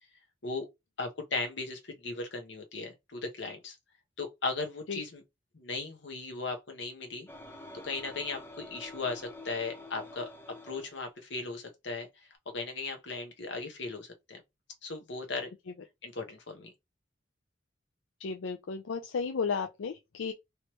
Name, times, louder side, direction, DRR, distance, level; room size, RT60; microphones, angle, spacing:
voice 1, 1.0-3.8 4.2-5.2 5.5-7.3 7.8-10.3 10.6-14.4 14.8-15.5 16.0-16.7, left 3 dB, 65° left, 1.0 m, -37 dB
sound 1, 7.3-11.0, left 2 dB, 10° left, 0.6 m, -47 dB
voice 2, 18.2-20.3, left 5 dB, 80° left, 0.4 m, -33 dB
3.1 x 3.0 x 3.1 m
head